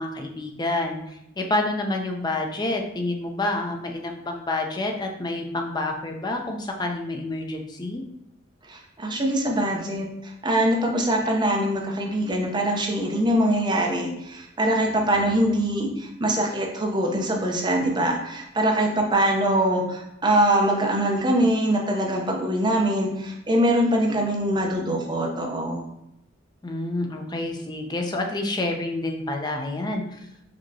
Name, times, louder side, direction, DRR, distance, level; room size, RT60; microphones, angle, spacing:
voice 1, 0.0-8.0 26.6-30.2, left 2 dB, 20° left, 3 dB, 0.5 m, -28 dB
voice 2, 8.7-25.8, right 1 dB, 25° right, 0 dB, 0.7 m, -23 dB
5.1 x 2.8 x 2.7 m, 0.82 s
head